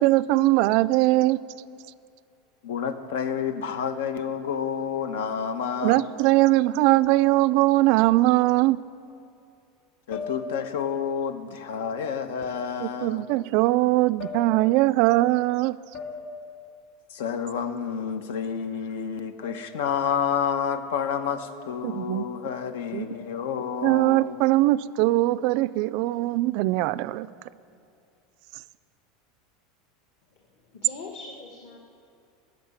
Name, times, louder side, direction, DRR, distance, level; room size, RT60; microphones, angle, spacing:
voice 1, 0.0-1.4 5.8-8.8 12.8-15.8 21.8-22.2 22.9-23.1 23.8-27.3, right 18 dB, 45° right, 16 dB, 0.3 m, -21 dB
voice 2, 2.6-6.1 10.1-13.2 17.1-24.5, left 7 dB, 85° left, 10 dB, 1.0 m, -29 dB
sound 1, 7.0-7.4 8.6-8.7 10.1-10.9 12.4-12.6 14.2-14.9 15.9-16.6 19.4-19.9 21.3-21.7 23.1-23.5, left 4 dB, 35° left, 2.4 m, -39 dB
voice 3, 30.7-31.8, left 3 dB, 50° left, 0 dB, 1.5 m, -41 dB
17.0 x 6.8 x 9.6 m, 2.5 s
supercardioid pair, 180°, 0 cm